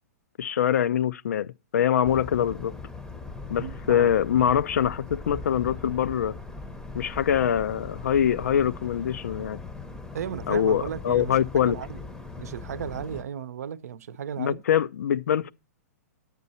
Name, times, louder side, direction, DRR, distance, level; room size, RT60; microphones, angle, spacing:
voice 1, 0.4-2.7 3.5-6.4 6.9-9.6 10.5-11.8 14.4-15.5, left 9 dB, 75° left, 0.5 m, -24 dB
sound 1, 2.0-13.2, left 3 dB, 5° left, 0.7 m, -40 dB
voice 2, 3.6-4.1 10.1-12.1 12.4-14.6, right 8 dB, 75° right, 0.7 m, -35 dB
11.0 x 8.3 x 4.2 m
hypercardioid pair, 130°, 9 cm